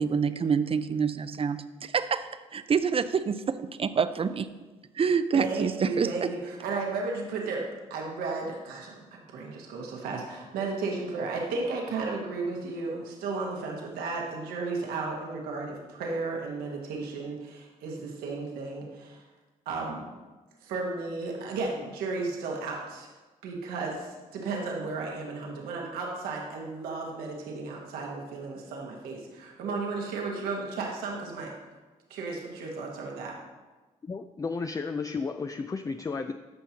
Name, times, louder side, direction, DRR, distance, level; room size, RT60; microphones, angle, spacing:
voice 1, 0.0-3.4 3.8-4.5 5.0-6.3, right 6 dB, 40° right, 12 dB, 0.6 m, -27 dB
voice 2, 5.3-19.2 19.6-20.0 20.6-23.1 23.4-31.5 32.1-33.4, right 3 dB, 85° right, -1 dB, 1.4 m, -34 dB
voice 3, 34.0-36.3, left 4 dB, 25° left, 8 dB, 0.4 m, -33 dB
14.0 x 5.6 x 2.9 m, 1.2 s
supercardioid pair, 55°, 15 cm